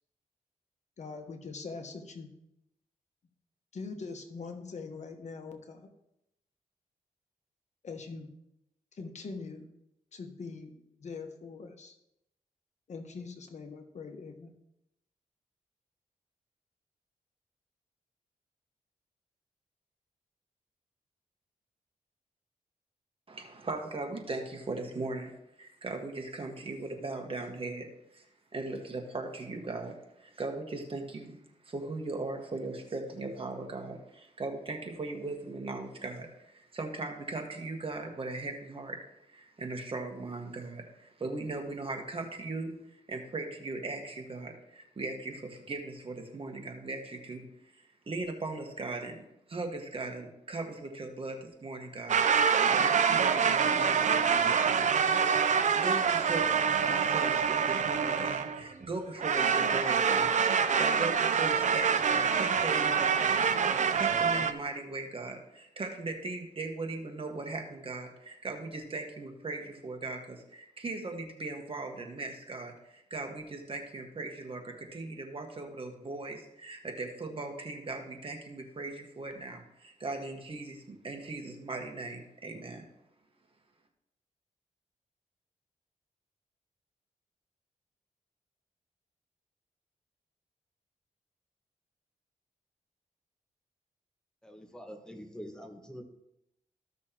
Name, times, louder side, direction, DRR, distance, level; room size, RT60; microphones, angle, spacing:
voice 1, 1.0-2.3 3.7-5.9 7.8-8.3 8.9-9.6 10.1-10.7 11.0-11.9 12.9-14.5, left 4 dB, 60° left, 5 dB, 1.3 m, -42 dB
voice 2, 23.3-25.3 25.6-27.9 28.1-28.2 28.5-31.3 31.6-39.0 39.2-47.4 47.8-49.2 49.5-82.8, right 3 dB, 40° right, 3 dB, 1.7 m, -39 dB
sound 1, 52.1-58.6 59.2-64.5, right 6 dB, 65° right, 0.6 m, -26 dB
voice 3, 94.4-96.0, equal, 5° left, 4 dB, 1.5 m, -45 dB
14.5 x 6.1 x 3.0 m, 0.83 s
cardioid pair, 70°, 14 cm